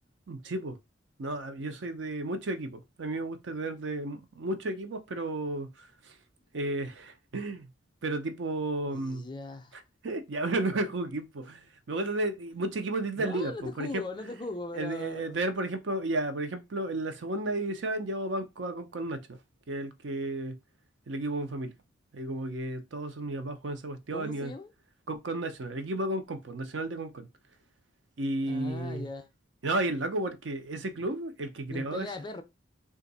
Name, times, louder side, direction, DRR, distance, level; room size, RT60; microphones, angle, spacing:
voice 1, 0.3-0.8 1.2-6.1 6.5-7.7 8.0-9.2 10.0-14.0 14.8-19.4 19.7-20.6 21.1-21.7 22.1-24.5 25.1-27.3 28.2-29.1 29.6-32.1, right 2 dB, 70° right, 0.6 m, -33 dB
voice 2, 8.9-9.7 13.2-15.5 24.1-24.7 28.4-29.3 31.7-32.4, left 2 dB, 25° left, 0.4 m, -39 dB
2.7 x 2.5 x 3.9 m
head